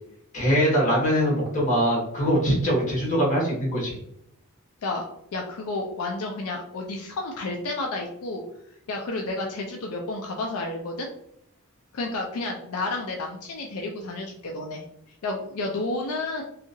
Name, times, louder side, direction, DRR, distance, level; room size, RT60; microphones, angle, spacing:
voice 1, 0.3-4.0, equal, 35° left, -4 dB, 1.3 m, -22 dB
voice 2, 5.3-8.4 8.9-11.1 11.9-14.8 15.2-16.4, left 2 dB, 70° left, 1 dB, 0.4 m, -31 dB
2.8 x 2.4 x 2.6 m, 0.74 s
head